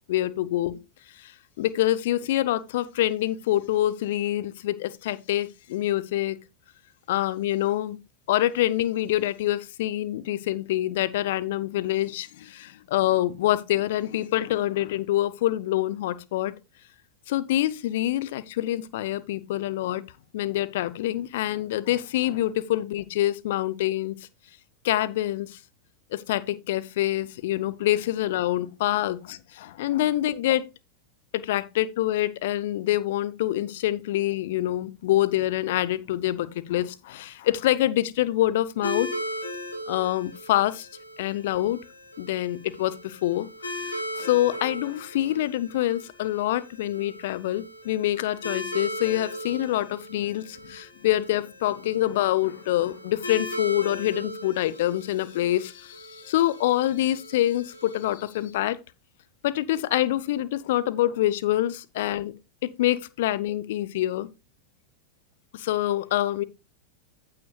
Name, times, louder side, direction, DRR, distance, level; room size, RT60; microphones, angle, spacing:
voice 1, 0.1-0.7 1.2-1.3 1.6-6.4 7.1-8.0 8.3-16.5 17.3-20.0 20.3-24.1 24.8-25.6 26.1-30.7 31.3-39.1 39.9-40.9 41.2-41.8 42.2-43.5 43.7-58.8 59.4-62.3 62.6-64.3 65.5-66.4, left 14 dB, 55° left, 0.7 m, -26 dB
sound 1, 38.8-58.0, equal, 75° left, 2.8 m, -38 dB
15.0 x 5.9 x 2.3 m
figure-of-eight pair, 90°, 0 cm